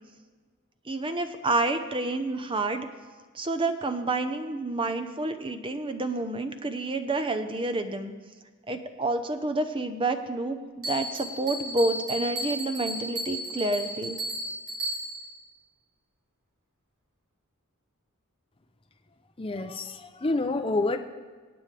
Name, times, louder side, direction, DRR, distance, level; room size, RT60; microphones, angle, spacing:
voice 1, 0.9-2.9 3.3-8.1 8.7-14.2, right 2 dB, 25° right, 7 dB, 0.8 m, -29 dB
Bell, 10.8-15.4, right 1 dB, 70° right, 3.3 m, -34 dB
voice 2, 19.4-21.0, left 2 dB, 25° left, 5 dB, 0.6 m, -28 dB
26.0 x 8.9 x 3.4 m, 1.5 s
head